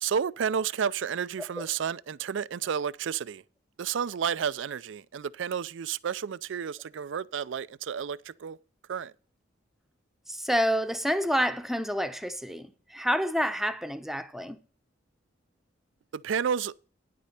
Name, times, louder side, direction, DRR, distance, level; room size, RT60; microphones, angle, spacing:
voice 1, 0.0-3.4 3.8-8.6 8.9-9.1 16.1-16.7, right 7 dB, 70° right, 0.4 m, -31 dB
voice 2, 10.3-14.6, equal, ahead, 0.8 m, -28 dB
10.5 x 8.4 x 4.2 m
head